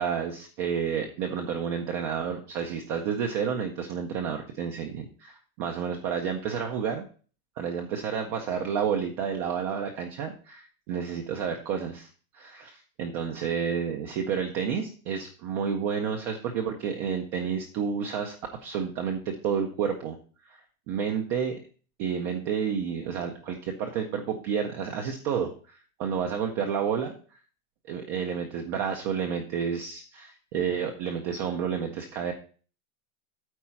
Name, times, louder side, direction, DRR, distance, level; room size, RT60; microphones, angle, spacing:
voice 1, 0.0-5.3 5.6-7.1 7.6-12.1 12.3-18.4 18.6-20.2 20.5-20.6 20.9-21.6 22.0-27.1 27.9-32.3, right 7 dB, 20° right, 3 dB, 0.4 m, -30 dB
8.8 x 4.1 x 5.6 m, 0.40 s
supercardioid pair, 160°, 41 cm